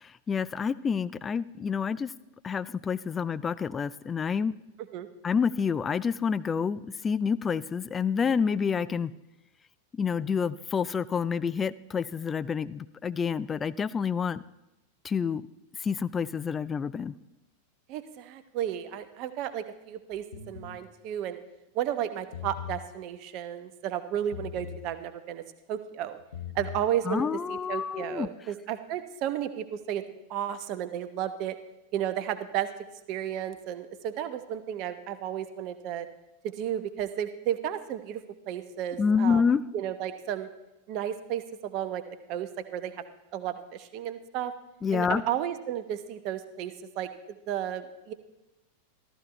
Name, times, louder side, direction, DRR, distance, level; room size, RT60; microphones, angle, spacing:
voice 1, 0.3-2.1 2.4-4.6 5.2-9.1 9.9-14.4 15.0-15.4 15.8-17.1 27.1-28.3 39.0-39.6 44.8-45.2, left 6 dB, 20° left, 16 dB, 0.4 m, -28 dB
voice 2, 17.9-21.4 21.7-25.4 25.7-26.2 26.5-30.0 30.3-31.6 31.9-32.7 33.1-36.1 36.6-38.2 38.5-39.4 39.7-40.5 40.9-42.0 42.3-43.0 43.3-44.5 44.9-48.1, right 10 dB, 40° right, 10 dB, 0.9 m, -33 dB
sound 1, 20.3-20.8 22.2-22.9 24.3-24.9 26.2-26.9, left 9 dB, 65° left, 0.9 m, -39 dB
14.0 x 14.0 x 3.2 m, 0.97 s
figure-of-eight pair, 90°, 0 cm